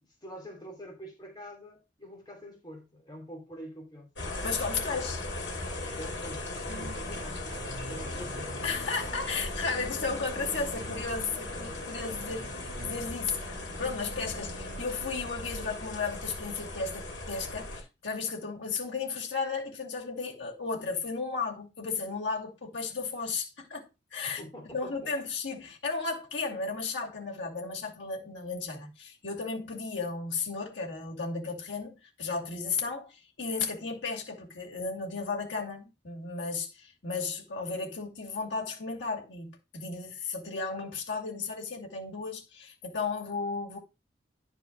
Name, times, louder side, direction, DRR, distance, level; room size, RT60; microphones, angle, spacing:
voice 1, 0.0-4.1 4.7-5.1 5.9-7.4 7.7-8.5 11.5-11.7 24.4-25.1, equal, 25° left, 2.8 m, -46 dB
sound 1, 4.2-17.8, left 2 dB, 70° left, 2.9 m, -38 dB
voice 2, 4.4-5.2 8.6-24.4 24.7-43.8, left 4 dB, 90° left, 2.5 m, -34 dB
sound 2, 6.7-14.8, right 3 dB, 50° right, 0.6 m, -48 dB
10.5 x 4.6 x 3.9 m
head